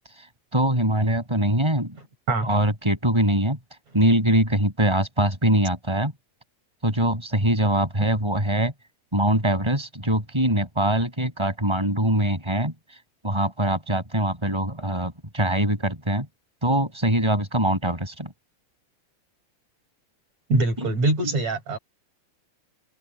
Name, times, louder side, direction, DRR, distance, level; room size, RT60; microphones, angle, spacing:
voice 1, 0.5-2.0 2.4-3.6 3.9-6.1 6.8-8.7 9.1-12.7 13.2-16.3 16.6-18.3 20.8-20.9, right 1 dB, 5° right, 7.6 m, -23 dB
voice 2, 20.5-21.8, right 2 dB, 30° right, 7.8 m, -23 dB
omnidirectional pair, 5.9 m